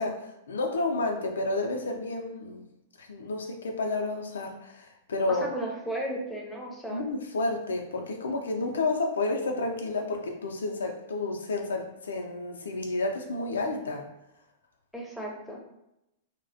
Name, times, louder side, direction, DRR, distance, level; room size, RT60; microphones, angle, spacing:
voice 1, 0.0-2.6 3.0-5.5 6.9-14.1, left 2 dB, 80° left, 2 dB, 0.4 m, -30 dB
voice 2, 5.4-7.1 14.9-15.6, right 1 dB, ahead, -2 dB, 0.6 m, -35 dB
2.3 x 2.1 x 2.5 m, 0.88 s
hypercardioid pair, 105°, 0 cm